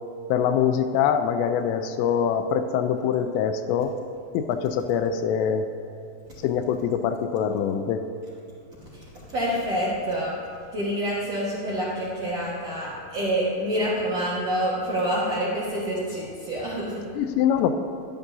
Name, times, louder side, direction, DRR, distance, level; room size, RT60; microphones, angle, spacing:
voice 1, 0.3-4.0 4.3-5.7 6.4-8.0 17.2-17.7, left 8 dB, 85° left, 8 dB, 2.8 m, -24 dB
voice 2, 8.9-10.3 10.7-17.0, equal, 60° right, -8 dB, 1.7 m, -27 dB
12.5 x 11.0 x 2.7 m, 2.6 s
omnidirectional pair, 5.1 m